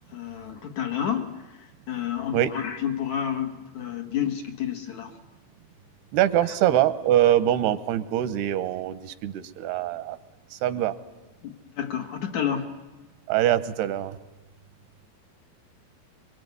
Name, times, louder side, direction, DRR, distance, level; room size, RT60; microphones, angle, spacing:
voice 1, 0.1-5.2 11.4-12.7, left 9 dB, 60° left, 4 dB, 2.3 m, -30 dB
voice 2, 6.1-10.2 10.5-10.9 13.3-14.2, right 12 dB, 85° right, 13 dB, 3.1 m, -23 dB
24.0 x 23.5 x 9.5 m, 1.1 s
omnidirectional pair, 4.5 m